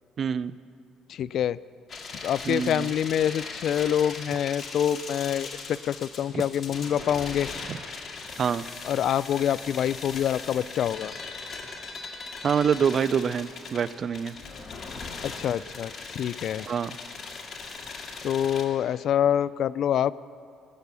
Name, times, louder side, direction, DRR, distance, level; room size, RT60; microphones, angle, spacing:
voice 1, 0.2-0.5 2.5-2.9 6.3-6.4 7.7-7.8 8.4-8.6 12.4-14.3 16.7-17.0, right 7 dB, 45° right, 17 dB, 0.4 m, -26 dB
voice 2, 1.1-1.6 2.2-7.5 8.8-11.1 15.2-16.7 18.2-20.1, left 10 dB, 60° left, 18 dB, 0.3 m, -26 dB
sound 1, 1.9-18.6, left 4 dB, 40° left, 2.0 m, -39 dB
20.5 x 9.0 x 6.9 m, 2.6 s
cardioid pair, 125°, 0 cm